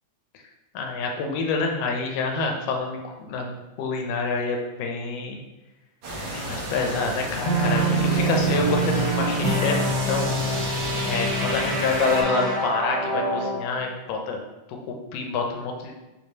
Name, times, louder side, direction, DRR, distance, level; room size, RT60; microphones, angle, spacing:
voice 1, 0.7-5.4 6.3-10.7 11.0-14.4 14.7-15.9, left 4 dB, 80° left, 2 dB, 1.5 m, -27 dB
sound 1, 6.0-12.2, right 1 dB, 70° right, 1.1 m, -33 dB
sound 2, 7.4-13.6, right 2 dB, 45° right, 1.6 m, -25 dB
6.5 x 2.6 x 2.8 m, 1.0 s
omnidirectional pair, 3.5 m